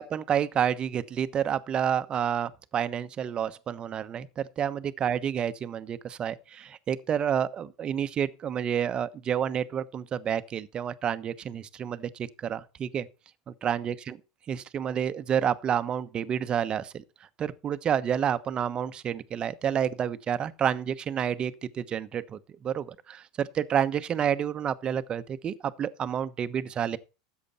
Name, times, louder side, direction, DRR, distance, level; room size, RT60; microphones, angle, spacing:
voice 1, 0.0-13.0 13.6-14.2 14.5-17.0 17.4-27.0, right 8 dB, 30° right, 1.0 m, -29 dB
13.0 x 8.4 x 4.2 m
hypercardioid pair, 110°, 3 cm